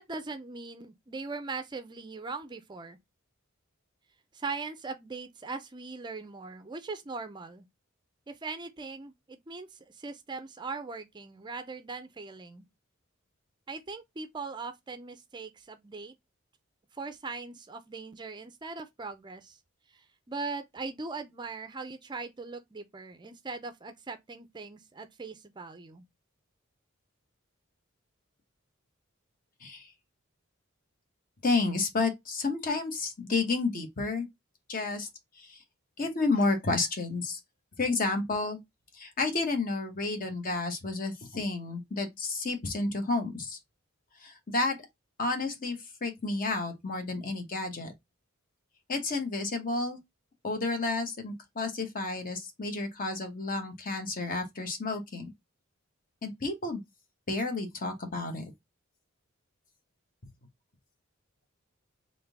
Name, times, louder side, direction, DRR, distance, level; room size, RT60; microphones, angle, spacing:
voice 1, 0.0-3.0 4.3-7.7 8.3-12.6 13.7-16.1 16.9-19.6 19.9-26.0, right 4 dB, 20° right, 0.4 m, -40 dB
voice 2, 31.4-34.3 34.7-35.1 35.4-35.6 36.0-37.4 37.8-38.6 38.9-43.6 44.2-44.8 45.2-47.9 48.9-50.0 50.4-55.3 56.2-56.8 57.3-58.4, left 3 dB, 40° left, 0.9 m, -31 dB
3.7 x 2.6 x 3.3 m
head